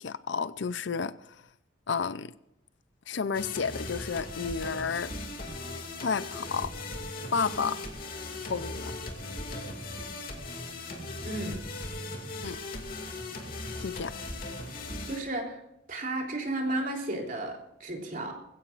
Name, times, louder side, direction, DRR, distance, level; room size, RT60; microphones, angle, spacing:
voice 1, 0.0-1.4 1.9-2.3 3.1-5.1 6.0-6.7 7.3-7.8 8.5-9.0 12.4-12.6 13.8-14.1, left 5 dB, 65° left, 0.5 m, -31 dB
sound 1, 3.3-15.2, left 2 dB, 45° left, 2.4 m, -38 dB
voice 2, 11.2-11.6 14.7-15.6 15.9-18.3, right 2 dB, 45° right, 3.5 m, -33 dB
21.0 x 16.5 x 2.5 m
head